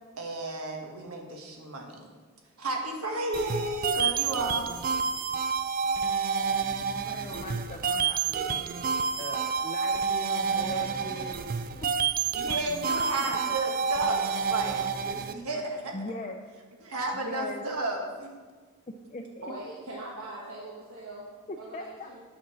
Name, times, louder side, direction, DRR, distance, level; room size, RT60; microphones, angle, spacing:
voice 1, 0.2-2.0 2.6-4.7 12.3-16.2 16.8-18.3, right 2 dB, 85° right, 2 dB, 1.5 m, -33 dB
sound 1, 3.3-15.3, right 6 dB, 40° right, 0.4 m, -29 dB
voice 2, 7.0-8.6 9.2-11.9 13.1-13.6 15.9-16.4 17.1-17.6 19.1-19.5 21.5-22.1, left 2 dB, 30° left, 1 dB, 0.5 m, -40 dB
voice 3, 19.4-21.3 21.6-22.2, right 1 dB, 70° right, -4 dB, 1.3 m, -41 dB
8.5 x 5.3 x 6.1 m, 1.4 s
head